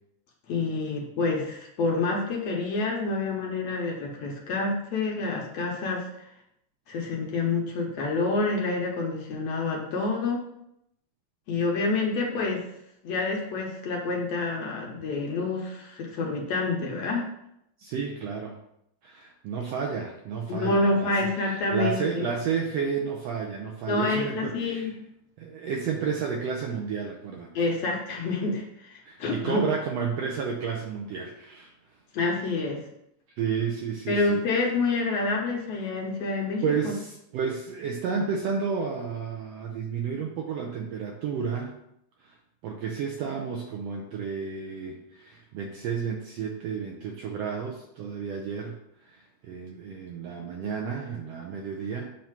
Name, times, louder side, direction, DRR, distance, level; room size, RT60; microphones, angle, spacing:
voice 1, 0.5-6.0 6.9-10.4 11.5-12.7 13.0-17.3 20.5-22.3 23.9-24.9 27.6-29.6 32.1-32.9 34.1-36.9, left 3 dB, 65° left, -1 dB, 1.9 m, -28 dB
voice 2, 17.8-18.6 19.0-24.9 25.4-27.7 29.0-31.7 33.4-34.4 36.6-41.7 42.2-42.4 42.6-52.1, right 6 dB, 75° right, 0 dB, 1.5 m, -31 dB
7.4 x 2.7 x 5.8 m, 0.78 s
omnidirectional pair, 3.5 m